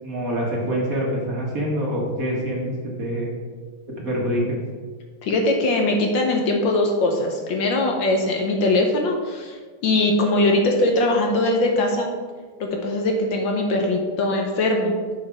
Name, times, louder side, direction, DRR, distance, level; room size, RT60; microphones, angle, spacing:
voice 1, 0.0-3.3 4.0-4.6, equal, 45° right, -2 dB, 1.7 m, -25 dB
voice 2, 5.2-9.6 9.8-12.1 12.6-15.0, left 2 dB, 65° left, 2 dB, 1.6 m, -21 dB
8.3 x 5.1 x 4.7 m, 1.5 s
omnidirectional pair, 2.3 m